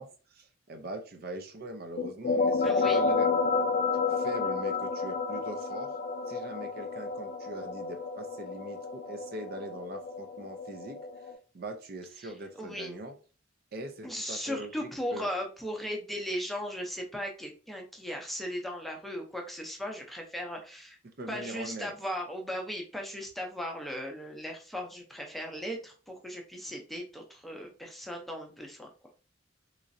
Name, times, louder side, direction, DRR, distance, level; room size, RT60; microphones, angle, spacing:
voice 1, 0.0-3.3 4.1-5.9 6.3-11.0 11.5-13.1 13.7-15.3 21.2-21.9, right 1 dB, 50° right, 5 dB, 0.5 m, -41 dB
sound 1, 2.0-11.4, left 4 dB, 45° left, 0.4 m, -30 dB
voice 2, 2.6-3.0 12.2-12.3 12.6-13.0 14.0-21.0 21.3-28.9, equal, ahead, 1 dB, 0.6 m, -37 dB
3.7 x 3.1 x 2.6 m, 0.36 s
head